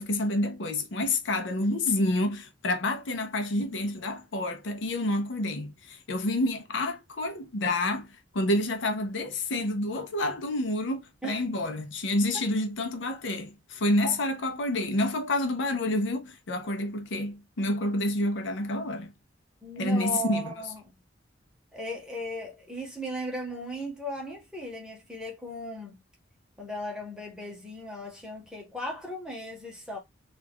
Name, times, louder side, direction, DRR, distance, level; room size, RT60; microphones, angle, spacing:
voice 1, 0.0-8.1 8.3-19.1 19.8-20.5, left 1 dB, 65° left, 0.6 m, -28 dB
voice 2, 19.6-21.0 21.7-26.0 26.6-30.0, equal, 5° right, 0.8 m, -37 dB
2.4 x 2.2 x 3.4 m
head